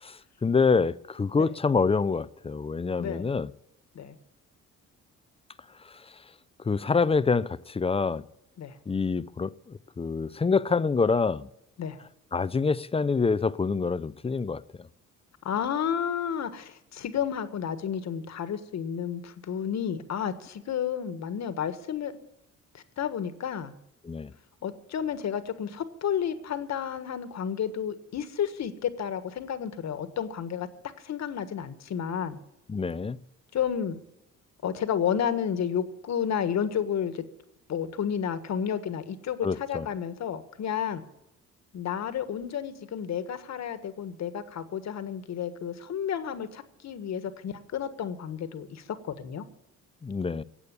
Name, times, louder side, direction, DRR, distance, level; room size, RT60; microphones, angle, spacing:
voice 1, 0.0-3.5 5.9-6.0 6.6-8.2 8.9-11.5 12.3-14.6 24.1-24.3 32.7-33.2 39.4-39.9 50.0-50.4, left 4 dB, 20° left, 0.5 m, -26 dB
voice 2, 15.4-22.1 22.7-23.7 24.6-30.7 31.0-32.4 33.5-34.0 34.6-37.2 37.7-41.0 41.7-49.5, left 8 dB, 60° left, 1.6 m, -31 dB
17.0 x 8.3 x 8.4 m
cardioid pair, 90°, 30 cm